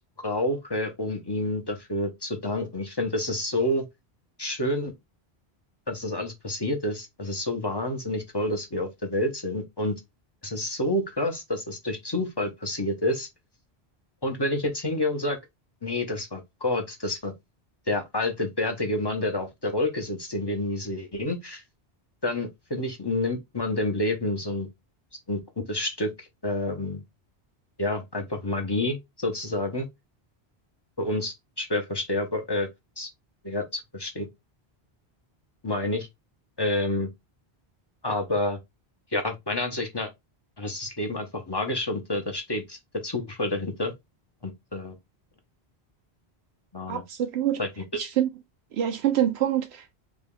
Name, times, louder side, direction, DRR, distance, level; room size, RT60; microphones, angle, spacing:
voice 1, 0.2-3.8 4.4-4.9 5.9-9.9 10.4-13.3 14.2-15.4 15.8-17.3 17.9-21.6 22.2-24.7 25.3-25.4 25.7-27.0 27.8-29.9 31.0-32.7 33.0-33.1 33.4-34.3 35.6-36.1 36.6-37.1 38.0-38.6 39.1-40.1 40.6-43.9 44.4-45.0 46.7-47.0 47.6-48.0, left 1 dB, 30° left, 0.6 m, -29 dB
voice 2, 46.9-47.6 48.0-48.3 48.7-49.9, right 11 dB, 85° right, 0.8 m, -26 dB
3.5 x 2.3 x 3.6 m
omnidirectional pair, 1.1 m